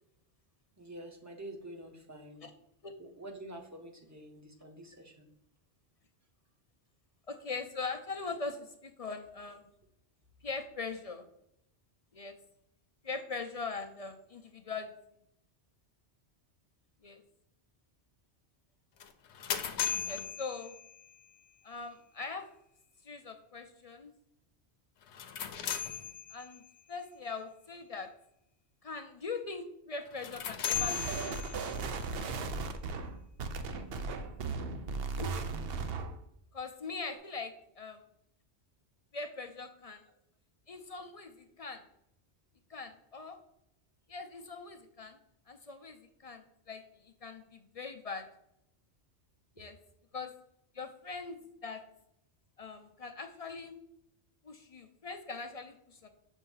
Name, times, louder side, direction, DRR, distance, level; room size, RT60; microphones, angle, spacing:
voice 1, 0.8-2.5 3.0-5.3 37.0-37.1, right 1 dB, 15° right, 2 dB, 0.8 m, -47 dB
voice 2, 7.3-9.7 10.4-11.3 12.1-12.4 13.0-14.9 17.0-17.2 20.0-20.8 21.6-22.5 23.0-24.1 25.4-25.5 26.3-28.1 28.8-31.7 35.2-35.4 36.5-38.0 39.1-40.1 40.7-41.8 42.7-43.4 44.1-45.2 45.5-48.3 49.6-49.8 50.1-50.3 50.7-51.8 52.6-53.7 54.4-56.1, left 4 dB, 45° left, 6 dB, 0.5 m, -41 dB
sound 1, 19.0-21.2 25.0-26.7 30.1-31.9, left 9 dB, 90° left, 0.9 m, -37 dB
sound 2, 30.7-36.2, right 4 dB, 65° right, 0.8 m, -36 dB
6.9 x 2.7 x 5.5 m, 0.78 s
omnidirectional pair, 1.1 m